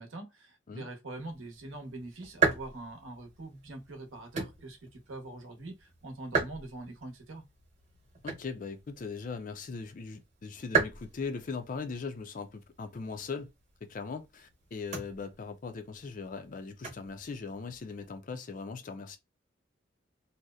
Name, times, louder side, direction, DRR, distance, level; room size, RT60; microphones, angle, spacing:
voice 1, 0.0-7.4, right 2 dB, 85° right, 0.8 m, -43 dB
sound 1, 1.1-18.2, right 5 dB, 35° right, 0.9 m, -38 dB
voice 2, 8.2-13.5 13.9-19.2, left 4 dB, 40° left, 0.4 m, -39 dB
2.6 x 2.0 x 2.3 m
head